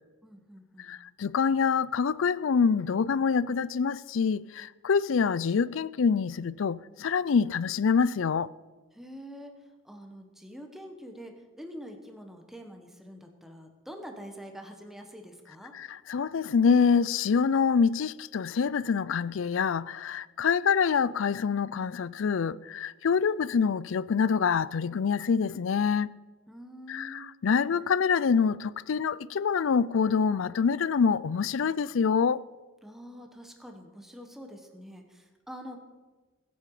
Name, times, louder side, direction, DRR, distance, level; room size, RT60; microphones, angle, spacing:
voice 1, 0.2-0.9 8.9-9.5 9.8-15.7 26.5-27.3 32.8-35.8, equal, ahead, 1.4 m, -45 dB
voice 2, 0.8-8.5 15.7-26.1 26.9-32.4, left 6 dB, 70° left, 0.4 m, -26 dB
20.5 x 8.7 x 4.9 m
head